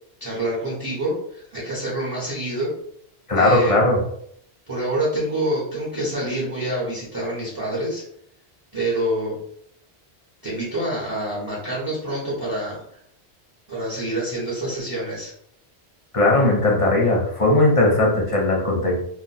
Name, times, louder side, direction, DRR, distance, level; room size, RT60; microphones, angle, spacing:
voice 1, 0.2-2.7 3.3-3.7 4.7-8.0 8.7-9.4 10.4-12.8 13.7-15.3, right 1 dB, 20° right, -7 dB, 0.8 m, -26 dB
voice 2, 3.3-4.0 16.1-19.0, left 2 dB, 35° left, -2 dB, 0.7 m, -18 dB
2.4 x 2.2 x 4.0 m, 0.69 s
omnidirectional pair, 1.1 m